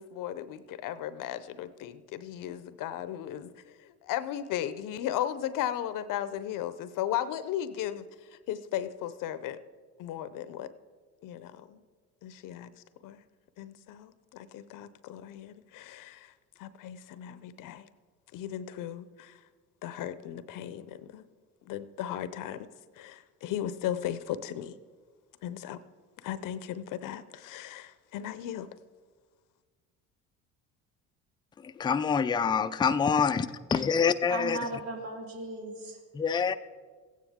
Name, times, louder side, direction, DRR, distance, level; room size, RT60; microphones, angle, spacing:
voice 1, 0.0-9.6 10.0-10.7 11.2-11.8 12.2-12.7 13.0-13.2 13.6-16.3 16.6-17.9 18.3-19.4 19.8-21.3 21.7-22.7 23.0-24.8 25.4-25.8 26.2-28.7, left 11 dB, 60° left, 0.7 m, -36 dB
voice 2, 31.6-33.5 33.7-34.6 36.1-36.6, left 6 dB, 15° left, 0.3 m, -26 dB
voice 3, 34.3-36.0, right 2 dB, 90° right, 1.9 m, -37 dB
15.5 x 9.3 x 3.6 m
supercardioid pair, 80°, 36 cm